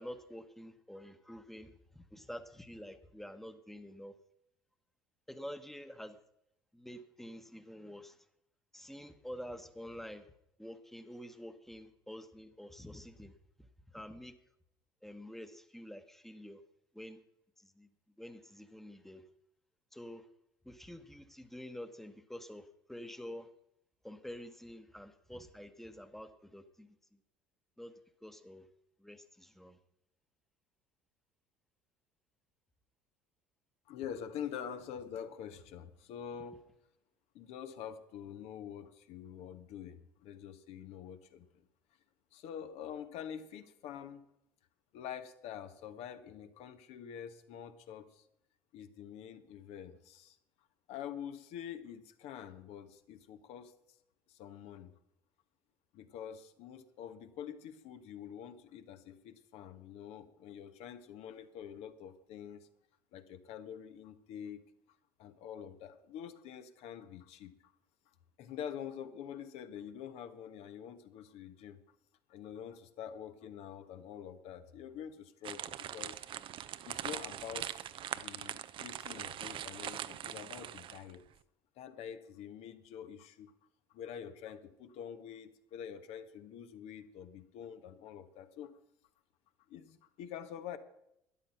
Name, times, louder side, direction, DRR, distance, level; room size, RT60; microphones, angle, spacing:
voice 1, 0.0-1.7 2.1-4.1 5.3-6.2 6.7-8.2 8.7-10.3 10.6-13.3 13.9-14.3 15.0-16.6 16.9-17.2 17.6-17.9 18.2-19.2 19.9-20.3 20.6-23.5 24.0-26.9 27.8-28.7 29.0-29.8, equal, ahead, 10 dB, 1.2 m, -48 dB
voice 2, 33.9-36.6 37.3-41.6 42.3-44.2 44.9-48.2 48.7-50.4 50.9-53.7 54.3-54.9 55.9-62.7 63.1-64.6 65.2-67.7 68.4-71.8 72.3-76.2 76.8-81.2 81.8-83.5 83.9-88.8 89.7-90.8, left 9 dB, 60° left, 9 dB, 1.2 m, -46 dB
sound 1, 75.4-81.2, right 11 dB, 45° right, 0.6 m, -42 dB
13.0 x 10.5 x 5.8 m, 0.78 s
hypercardioid pair, 65°, 12 cm